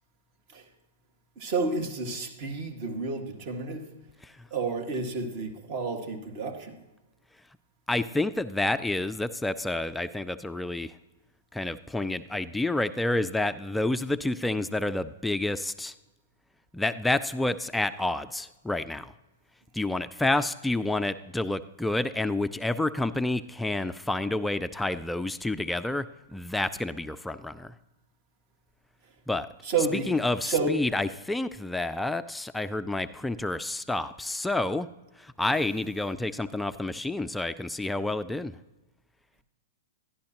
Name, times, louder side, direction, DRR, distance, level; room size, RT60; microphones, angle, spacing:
voice 1, 1.4-3.8 4.5-6.8 29.6-30.1 30.4-30.8, right 4 dB, 45° right, 4 dB, 1.7 m, -30 dB
voice 2, 7.9-10.9 11.5-15.9 16.7-19.1 19.7-26.1 26.3-27.7 29.3-29.5 29.9-34.9 35.2-38.5, left 2 dB, 5° left, 11 dB, 0.3 m, -29 dB
11.5 x 11.5 x 2.9 m, 1.0 s
hypercardioid pair, 120°, 0 cm